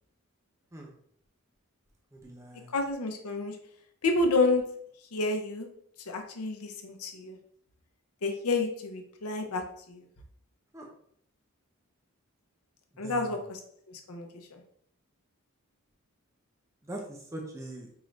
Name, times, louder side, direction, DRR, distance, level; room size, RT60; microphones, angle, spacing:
voice 1, 2.1-2.8 10.7-10.9 13.0-13.5 16.8-17.9, right 1 dB, 15° right, 0 dB, 0.5 m, -42 dB
voice 2, 2.7-3.6 4.0-4.6 5.1-5.7 6.1-7.4 8.2-10.0 13.0-13.6 13.9-14.6, left 3 dB, 85° left, 4 dB, 0.7 m, -29 dB
4.7 x 2.6 x 3.1 m, 0.66 s
head